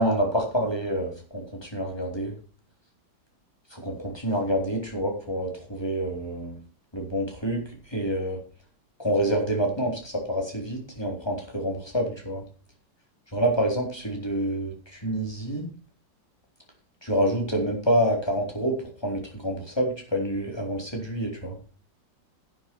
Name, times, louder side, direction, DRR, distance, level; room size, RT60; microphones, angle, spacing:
voice 1, 0.0-2.3 3.7-6.6 6.9-8.4 9.0-12.4 13.3-15.7 17.0-18.8 19.0-21.6, equal, 10° left, 0 dB, 4.1 m, -27 dB
11.5 x 9.8 x 4.8 m, 0.39 s
omnidirectional pair, 2.1 m